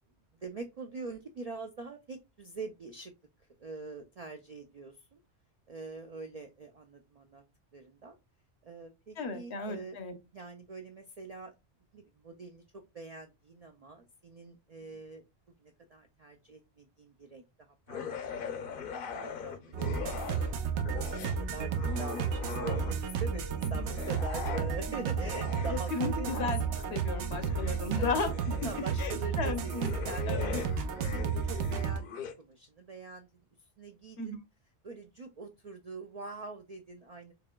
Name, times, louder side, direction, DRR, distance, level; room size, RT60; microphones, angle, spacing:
voice 1, 0.4-3.1 3.6-5.2 5.7-7.4 7.7-8.2 8.6-10.0 10.3-11.5 11.9-15.2 15.6-17.4 17.9-20.1 20.4-20.5 20.9-26.4 27.9-28.1 28.6-30.5 30.9-33.3 33.8-34.3 34.8-37.3, right 3 dB, 65° right, 5 dB, 0.4 m, -44 dB
voice 2, 9.2-10.1 23.6-23.9 24.9-25.0 25.7-26.6 26.9-28.3 28.6-28.7 29.0-29.9 30.3-30.6 34.2-34.4, left 4 dB, 75° left, 8 dB, 1.1 m, -34 dB
sound 1, 17.9-20.5 20.8-23.2 23.7-32.3, left 7 dB, 60° left, 0.7 m, -41 dB
sound 2, 19.7-32.0, right 6 dB, 90° right, 0.9 m, -33 dB
4.8 x 2.9 x 2.2 m, 0.24 s
omnidirectional pair, 1.1 m